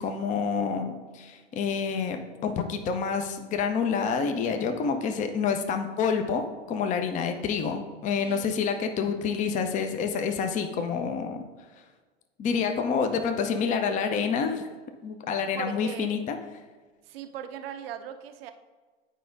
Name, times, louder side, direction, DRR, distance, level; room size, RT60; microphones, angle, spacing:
voice 1, 0.0-11.4 12.4-14.7 15.0-16.4, left 6 dB, 25° left, 6 dB, 0.5 m, -28 dB
voice 2, 8.2-8.6 15.6-16.1 17.1-18.5, right 9 dB, 65° right, 9 dB, 0.6 m, -39 dB
9.2 x 5.0 x 2.5 m, 1.4 s
figure-of-eight pair, 90°, 32 cm